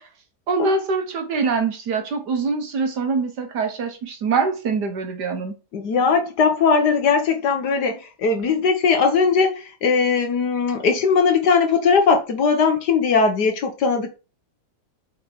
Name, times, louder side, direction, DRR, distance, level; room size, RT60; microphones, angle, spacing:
voice 1, 0.5-5.5, right 4 dB, 60° right, 1.7 m, -24 dB
voice 2, 5.7-14.1, left 5 dB, 60° left, 1.6 m, -19 dB
5.4 x 5.2 x 4.5 m
omnidirectional pair, 2.1 m